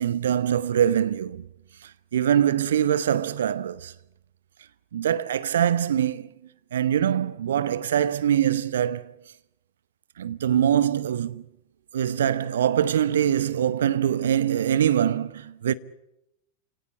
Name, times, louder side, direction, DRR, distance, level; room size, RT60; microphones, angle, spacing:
voice 1, 0.0-1.4 1.8-3.9 4.9-6.3 6.7-9.1 10.2-11.4 11.9-15.7, right 9 dB, 65° right, 0.9 m, -23 dB
30.0 x 18.0 x 8.5 m
figure-of-eight pair, 90°, 0 cm